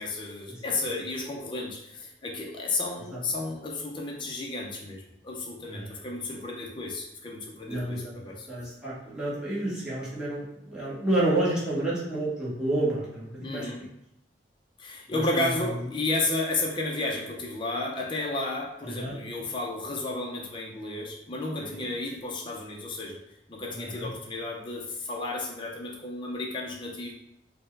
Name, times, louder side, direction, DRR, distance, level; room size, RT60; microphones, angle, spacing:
voice 1, 0.0-8.5 13.4-13.8 14.8-23.2 23.5-27.1, left 2 dB, 30° left, -2 dB, 0.5 m, -32 dB
voice 2, 7.7-13.7 15.1-15.5 18.8-19.1 21.6-21.8 23.7-24.1, right 1 dB, 5° right, -9 dB, 1.1 m, -30 dB
4.3 x 2.1 x 3.2 m, 0.82 s
head